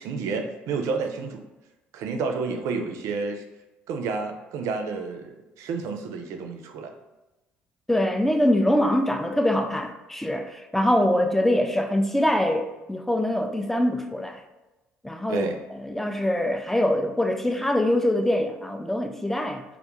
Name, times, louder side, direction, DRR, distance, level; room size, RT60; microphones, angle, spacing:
voice 1, 0.0-1.4 1.9-3.4 3.9-6.9 15.3-15.6, right 4 dB, 65° right, 0.4 m, -30 dB
voice 2, 7.9-14.4 15.0-15.5 15.7-19.6, left 1 dB, 5° left, 0.3 m, -24 dB
2.2 x 2.1 x 2.9 m
hypercardioid pair, 60°, 6 cm